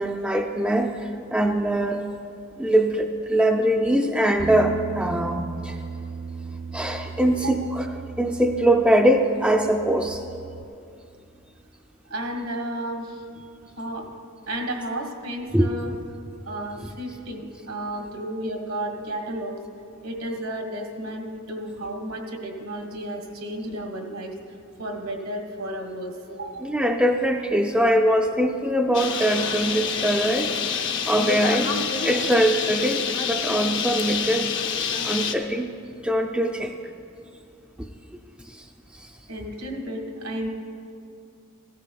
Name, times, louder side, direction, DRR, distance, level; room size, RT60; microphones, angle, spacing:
voice 1, 0.0-2.0 2.6-5.8 6.7-7.9 8.2-10.2 15.5-15.7 26.6-31.7 32.0-34.5 35.0-35.7 36.0-36.8 38.5-38.6 39.0-39.1, right 1 dB, 5° right, 3 dB, 0.3 m, -22 dB
Bass guitar, 4.4-10.6, right 4 dB, 55° right, 0.7 m, -36 dB
voice 2, 7.3-7.7 12.1-13.2 13.8-14.1 14.5-15.9 16.4-19.6 20.0-24.3 24.8-26.7 39.3-40.5, right 1 dB, 75° right, 2 dB, 1.5 m, -32 dB
Bird, 28.9-35.3, left 6 dB, 60° left, 0.6 m, -27 dB
16.0 x 13.0 x 2.3 m, 2.5 s
head